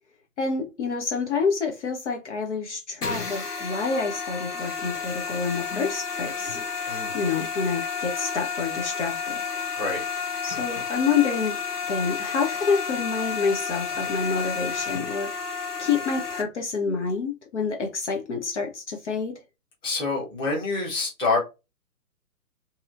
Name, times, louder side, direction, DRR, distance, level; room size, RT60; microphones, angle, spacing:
voice 1, 0.4-9.4 10.4-11.6 11.9-19.3, left 5 dB, 50° left, 0.7 m, -28 dB
sound 1, 3.0-16.4, left 5 dB, 90° left, 1.0 m, -31 dB
voice 2, 19.8-21.4, left 3 dB, 10° left, 0.9 m, -26 dB
2.7 x 2.7 x 2.5 m
figure-of-eight pair, 125°, 45 cm